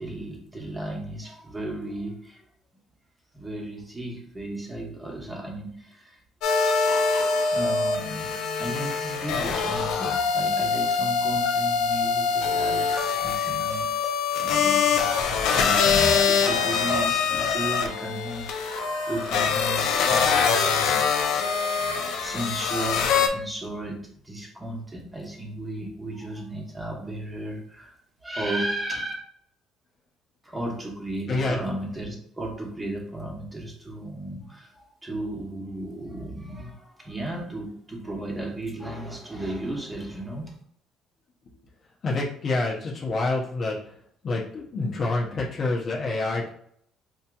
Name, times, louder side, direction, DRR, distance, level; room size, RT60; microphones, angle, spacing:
voice 1, 0.0-2.4 3.3-6.2 6.8-29.1 30.4-40.5, right 1 dB, 15° right, 0 dB, 1.0 m, -35 dB
sound 1, 6.4-23.3, left 5 dB, 75° left, 0.5 m, -24 dB
voice 2, 31.3-31.6 41.5-41.6 42.0-44.0 44.2-46.5, left 2 dB, 40° left, -4 dB, 0.7 m, -27 dB
4.7 x 2.8 x 2.3 m, 0.65 s
cardioid pair, 125°, 0 cm